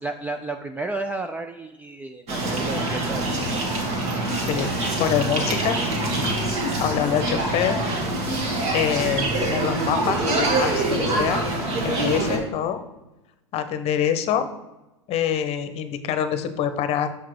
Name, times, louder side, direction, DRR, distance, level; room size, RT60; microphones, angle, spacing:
voice 1, 0.0-3.6 6.4-6.7, right 2 dB, 10° right, 6 dB, 0.5 m, -33 dB
sound 1, 2.3-12.4, right 2 dB, 45° right, 2.1 m, -25 dB
voice 2, 4.3-5.8 6.8-7.8 8.7-11.4 11.8-12.8 13.5-14.5 15.1-17.1, left 9 dB, 40° left, 10 dB, 0.9 m, -25 dB
6.8 x 5.8 x 4.8 m, 1.0 s
hypercardioid pair, 95°, 16 cm